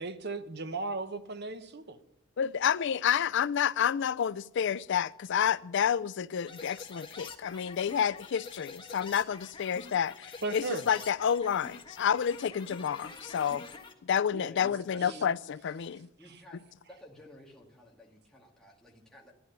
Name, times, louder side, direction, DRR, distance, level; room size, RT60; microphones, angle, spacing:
voice 1, 0.0-2.0 10.4-10.8 15.0-15.2, right 3 dB, 55° right, 1.0 m, -36 dB
voice 2, 2.4-13.6 14.0-16.1, left 8 dB, 60° left, 0.4 m, -29 dB
sound 1, 6.5-13.9, left 4 dB, 25° left, 1.5 m, -47 dB
voice 3, 14.3-15.3 16.2-16.6 16.9-19.3, equal, 5° left, 1.9 m, -51 dB
12.0 x 11.5 x 7.0 m
head